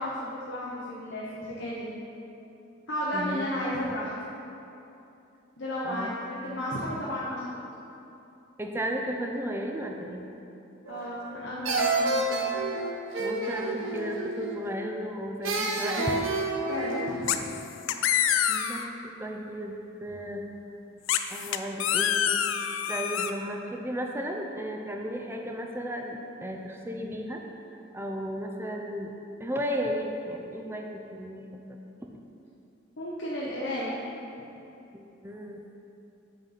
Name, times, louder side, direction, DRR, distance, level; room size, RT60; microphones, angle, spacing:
voice 1, 0.0-1.9 2.9-4.1 5.6-7.6 10.9-12.4 16.7-17.5 18.2-18.3 33.0-34.0, equal, 65° left, -6 dB, 0.9 m, -33 dB
voice 2, 3.1-3.4 5.8-6.1 8.6-10.3 13.2-16.2 16.8-16.9 18.5-20.4 21.3-27.4 27.9-29.1 29.4-31.8 32.1-32.2 34.9-35.6, equal, 10° right, 2 dB, 0.4 m, -34 dB
sound 1, 10.9-11.3 11.6-14.7 15.4-17.3, right 2 dB, 85° right, 0.8 m, -29 dB
sound 2, 17.3-17.6 17.9-18.9 21.1-23.3, left 9 dB, 85° left, 0.4 m, -26 dB
7.9 x 4.0 x 5.7 m, 2.8 s
head